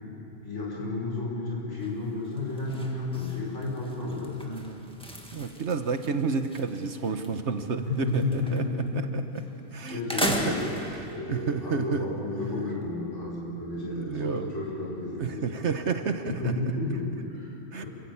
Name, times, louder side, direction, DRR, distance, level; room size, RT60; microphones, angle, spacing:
voice 1, 0.0-4.6 7.9-9.2 9.9-15.5 16.4-17.9, left 2 dB, 70° left, -4 dB, 5.8 m, -32 dB
sound 1, 1.8-2.1 2.4-7.4 7.7-8.9 9.4-9.5 9.9-11.2, equal, 5° left, 1.7 m, -36 dB
voice 2, 4.5-4.8 5.3-9.2 9.7-10.5 10.9-12.0 13.8-14.5 15.2-16.5 17.7-17.8, right 5 dB, 65° right, 8 dB, 1.4 m, -31 dB
27.0 x 15.5 x 8.6 m, 2.9 s
omnidirectional pair, 1.3 m